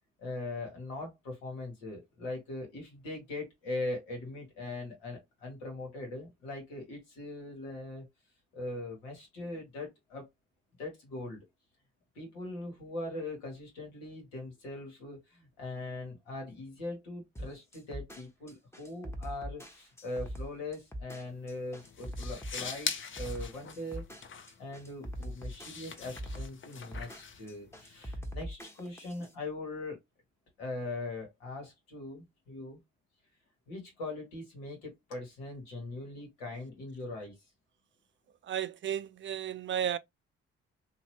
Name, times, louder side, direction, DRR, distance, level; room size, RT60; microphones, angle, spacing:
voice 1, 0.2-8.0 8.5-10.3 10.8-11.4 12.1-22.9 23.2-24.0 24.6-30.0 30.6-32.8 33.7-37.3, left 2 dB, 90° left, 1.4 m, -41 dB
sound 1, 17.4-29.3, equal, 10° left, 0.9 m, -42 dB
sound 2, 21.3-28.1, left 6 dB, 40° left, 0.7 m, -43 dB
voice 2, 38.5-40.0, right 9 dB, 40° right, 0.4 m, -33 dB
2.8 x 2.5 x 2.9 m
hypercardioid pair, 45°, 30 cm